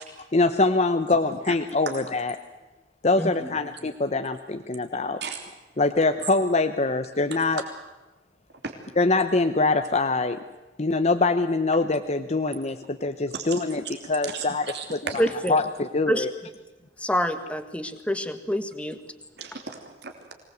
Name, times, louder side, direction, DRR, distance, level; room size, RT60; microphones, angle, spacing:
voice 1, 0.3-2.4 3.0-5.2 5.8-7.6 9.0-10.4 10.8-15.2 15.5-16.3, left 3 dB, 40° left, 7 dB, 0.9 m, -24 dB
voice 2, 3.2-3.5 15.2-15.6 16.1-16.2 17.0-19.0, equal, 5° left, 8 dB, 1.6 m, -27 dB
voice 3, 14.7-15.2 19.4-20.3, right 5 dB, 70° right, 3 dB, 3.1 m, -35 dB
24.0 x 19.5 x 8.0 m, 1.2 s
head